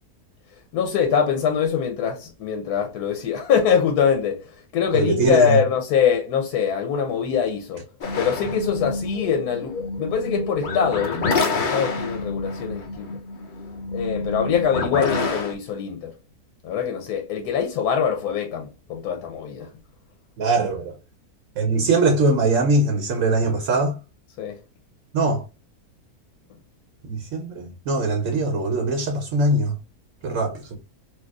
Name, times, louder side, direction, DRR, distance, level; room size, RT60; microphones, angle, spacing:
voice 1, 0.7-7.8 8.2-13.2 13.9-16.1 16.6-19.7 24.4-24.6, left 7 dB, 90° left, 1.2 m, -23 dB
voice 2, 4.9-5.6 20.4-20.9 21.6-24.0 25.1-25.4 27.1-29.7 30.2-30.8, right 2 dB, 65° right, 0.9 m, -21 dB
sound 1, 8.0-15.5, left 3 dB, 60° left, 0.5 m, -28 dB
4.5 x 2.3 x 2.3 m
omnidirectional pair, 1.6 m